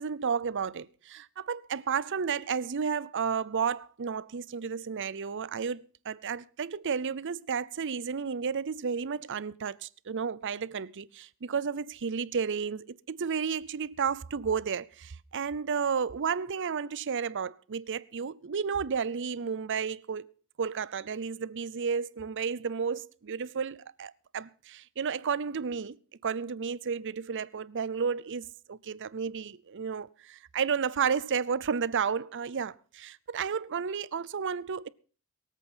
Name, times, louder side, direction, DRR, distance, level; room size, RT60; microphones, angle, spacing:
voice 1, 0.0-20.3 20.6-26.0 26.2-34.9, right 6 dB, 60° right, 0.6 m, -32 dB
22.0 x 8.3 x 5.5 m
head